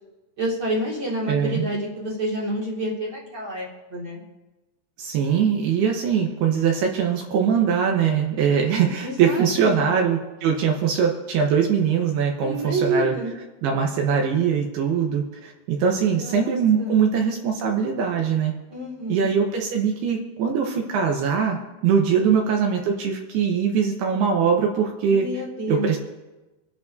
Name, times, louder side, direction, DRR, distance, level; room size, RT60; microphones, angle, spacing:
voice 1, 0.4-4.2 9.0-9.9 12.4-13.3 16.1-17.0 18.7-19.3 22.1-22.4 25.1-25.9, right 1 dB, 40° right, -4 dB, 2.1 m, -28 dB
voice 2, 1.3-1.7 5.0-13.1 13.6-18.5 19.1-21.6 21.8-25.3 25.7-26.0, right 7 dB, 75° right, 2 dB, 2.6 m, -22 dB
27.0 x 10.5 x 2.7 m, 1.1 s
omnidirectional pair, 5.4 m